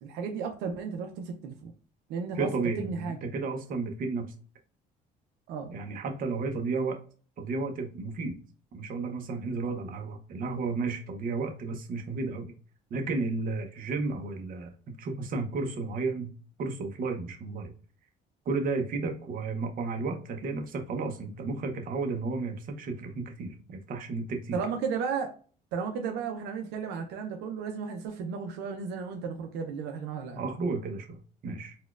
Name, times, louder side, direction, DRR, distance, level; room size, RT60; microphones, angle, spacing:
voice 1, 0.0-1.7 2.1-2.5 2.8-3.2 5.5-5.7 24.5-25.3 25.7-30.4, right 6 dB, 85° right, 4 dB, 0.5 m, -34 dB
voice 2, 2.4-4.3 5.7-7.0 7.4-8.4 8.7-12.5 12.9-16.3 16.6-17.7 18.5-24.6 30.4-31.8, right 3 dB, 55° right, 4 dB, 0.8 m, -33 dB
4.1 x 2.2 x 2.3 m, 0.41 s
cardioid pair, 110°, 17 cm